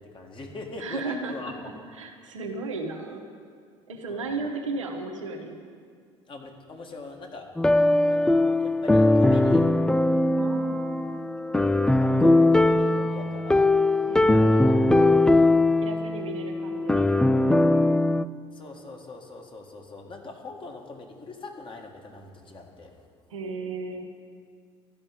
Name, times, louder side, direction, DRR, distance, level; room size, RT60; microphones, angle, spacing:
voice 1, 0.0-1.7 4.1-4.3 6.3-7.5 8.0-9.6 11.9-13.7 14.2-14.7 18.5-23.1, left 3 dB, 30° left, 2 dB, 1.8 m, -42 dB
voice 2, 0.8-1.5 2.0-3.2 3.9-5.6 10.4-11.2 14.1-14.9 15.8-17.3 23.3-24.1, right 3 dB, 80° right, 3 dB, 1.0 m, -35 dB
sound 1, 7.6-18.2, left 2 dB, 5° left, 0.3 m, -20 dB
12.0 x 5.5 x 9.1 m, 2.1 s
figure-of-eight pair, 60°, 16 cm